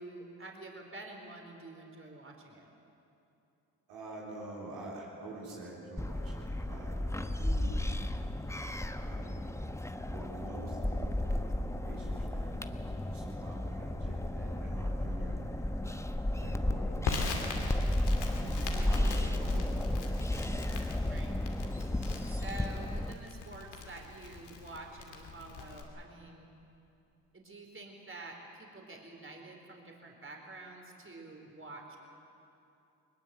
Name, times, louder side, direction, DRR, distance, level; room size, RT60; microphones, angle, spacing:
voice 1, 0.0-2.7 18.1-18.4 21.0-21.3 22.3-26.5 27.3-32.0, right 2 dB, 30° right, 1 dB, 4.2 m, -48 dB
voice 2, 3.9-7.8 9.0-9.3 10.1-16.0 16.4-17.4 18.4-19.9, right 2 dB, 85° right, -4 dB, 4.2 m, -47 dB
sound 1, 6.0-23.1, left 1 dB, 5° left, 1.1 m, -33 dB
Crackle, 17.0-25.8, left 4 dB, 70° left, 2.7 m, -41 dB
20.0 x 20.0 x 7.7 m, 2.8 s
hypercardioid pair, 45°, 41 cm